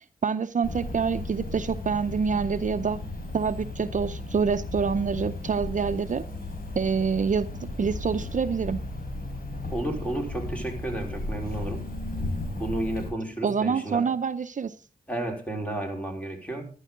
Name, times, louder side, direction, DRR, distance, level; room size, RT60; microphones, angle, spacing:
voice 1, 0.2-3.0 3.3-6.2 6.8-7.5 7.8-8.8 13.4-14.7, right 6 dB, 55° right, 11 dB, 0.6 m, -26 dB
Cricket, 0.6-13.1, left 2 dB, 75° left, 5.5 m, -35 dB
voice 2, 9.7-11.9 12.6-14.0 15.1-16.6, right 1 dB, 10° left, 2 dB, 4.6 m, -32 dB
14.0 x 12.0 x 3.7 m, 0.36 s
wide cardioid pair, 85°, 15 cm